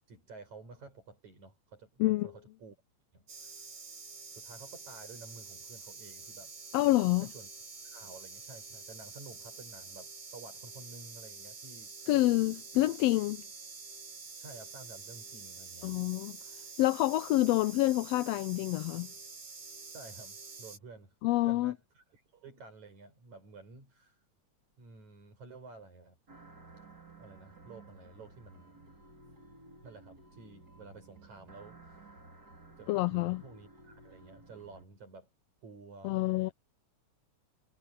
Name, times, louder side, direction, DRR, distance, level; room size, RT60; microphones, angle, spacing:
voice 1, 0.1-2.8 3.1-3.5 4.4-6.5 7.2-7.5 7.8-11.9 14.4-16.0 19.9-21.1 21.4-24.2 24.8-26.2 27.2-28.8 29.8-32.0 32.8-35.3 35.6-36.5, right 3 dB, 70° right, 7.5 m, -52 dB
voice 2, 2.0-2.3 6.7-7.3 12.1-13.4 15.8-16.4 16.8-19.1 21.2-21.7 32.9-33.4 36.0-36.5, left 17 dB, 80° left, 1.5 m, -27 dB
sound 1, 3.3-20.8, right 4 dB, 50° right, 4.4 m, -47 dB
sound 2, 26.3-34.8, right 2 dB, 30° right, 4.9 m, -55 dB
omnidirectional pair, 3.4 m